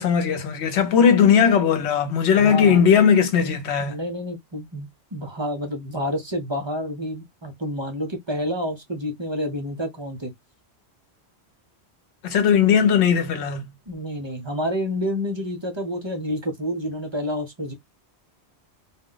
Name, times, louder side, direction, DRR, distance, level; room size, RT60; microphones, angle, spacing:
voice 1, 0.0-3.9 12.2-13.6, left 7 dB, 75° left, 0.9 m, -18 dB
voice 2, 2.4-2.8 3.8-10.3 13.9-17.7, equal, 35° right, 0.5 m, -29 dB
2.3 x 2.1 x 3.7 m
omnidirectional pair, 1.1 m